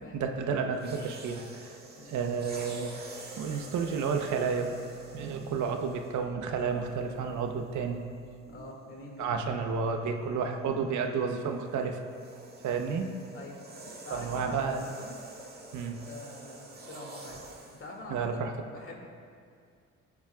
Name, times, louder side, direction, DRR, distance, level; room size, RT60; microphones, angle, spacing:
voice 1, 0.1-1.8 2.1-3.1 3.4-4.7 5.1-8.1 8.5-8.6 9.2-12.0 12.6-13.1 14.1-14.9 15.7-16.0 18.1-18.5, right 5 dB, 75° right, 4 dB, 0.9 m, -31 dB
sound 1, 0.7-6.3 7.1-7.3 11.2-17.9, right 2 dB, 30° right, 1.8 m, -47 dB
voice 2, 8.5-9.7 13.3-13.6 14.0-15.2 16.0-19.0, left 2 dB, 45° left, -1 dB, 2.2 m, -45 dB
20.5 x 7.3 x 2.4 m, 2.3 s
cardioid pair, 90°, 30 cm